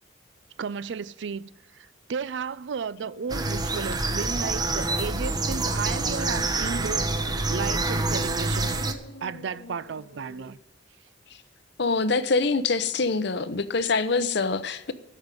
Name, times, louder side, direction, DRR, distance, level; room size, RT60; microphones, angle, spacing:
voice 1, 0.6-8.9 9.2-10.6, right 6 dB, 65° right, 0.4 m, -34 dB
sound 1, 3.0-10.5, right 1 dB, 85° left, 1.5 m, -47 dB
sound 2, 3.3-8.9, right 2 dB, 20° right, 0.8 m, -27 dB
voice 2, 11.8-14.9, left 4 dB, 60° left, 0.8 m, -25 dB
12.5 x 5.3 x 9.0 m
head